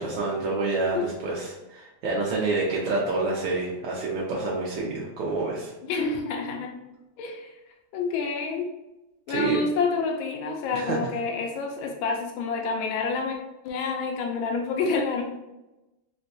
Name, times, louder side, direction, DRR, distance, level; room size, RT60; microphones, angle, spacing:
voice 1, 0.0-5.7 9.3-9.6 10.7-11.0, right 3 dB, 75° right, -4 dB, 1.2 m, -28 dB
voice 2, 5.8-6.7 7.2-7.5 7.9-8.7 9.3-13.4 13.6-15.2, left 4 dB, 85° left, 2 dB, 1.4 m, -28 dB
3.9 x 2.2 x 2.6 m, 0.99 s
omnidirectional pair, 2.2 m